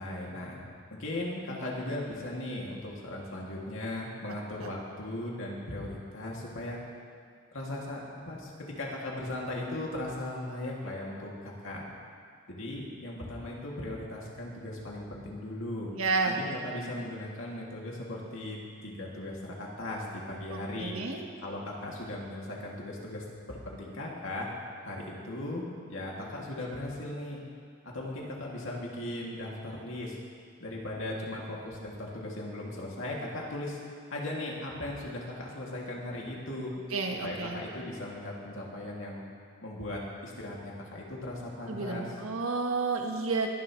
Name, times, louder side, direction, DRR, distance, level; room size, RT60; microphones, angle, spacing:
voice 1, 0.0-6.8 7.5-11.9 12.5-15.9 16.3-21.0 21.4-24.5 24.8-27.4 27.8-30.2 30.6-33.8 34.1-36.7 37.2-39.2 39.6-42.2, left 1 dB, 75° left, -3 dB, 2.5 m, -38 dB
voice 2, 15.9-16.4 20.5-21.2 36.9-37.6 41.7-43.5, right 4 dB, 85° right, 2 dB, 1.5 m, -31 dB
22.5 x 10.5 x 3.2 m, 2.1 s
head